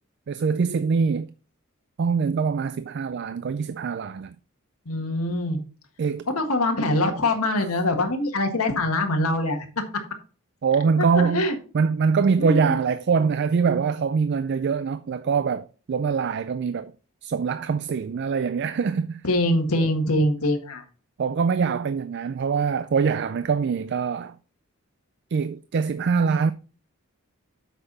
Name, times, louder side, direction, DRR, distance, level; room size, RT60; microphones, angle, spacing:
voice 1, 0.3-1.3 2.0-4.4 6.0-6.3 10.6-11.5 11.7-16.9 17.2-19.2 21.2-24.4 25.3-26.5, right 5 dB, 50° right, 0.4 m, -23 dB
voice 2, 4.9-5.6 6.4-9.7 11.3-11.5 12.4-12.8 19.2-20.8, left 1 dB, 90° left, 1.7 m, -23 dB
8.1 x 5.8 x 4.0 m
head